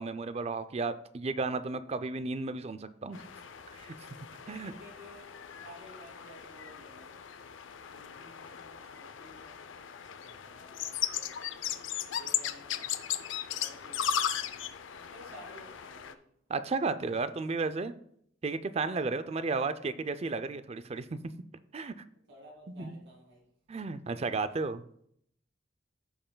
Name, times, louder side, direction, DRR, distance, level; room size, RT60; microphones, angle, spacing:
voice 1, 0.0-3.2 3.7-3.9 4.5-4.7 16.5-17.9 18.4-21.2 21.7-21.9 22.7-23.0 23.7-24.8, right 3 dB, 35° right, 12 dB, 0.4 m, -33 dB
sound 1, 3.1-16.1, left 9 dB, 85° left, 0.5 m, -37 dB
voice 2, 4.5-7.1 7.9-9.8 10.1-11.5 12.2-12.9 13.5-14.1 14.9-16.2 19.2-19.4 22.3-23.4, equal, 75° right, -2 dB, 2.3 m, -54 dB
15.5 x 5.5 x 2.2 m, 0.69 s
head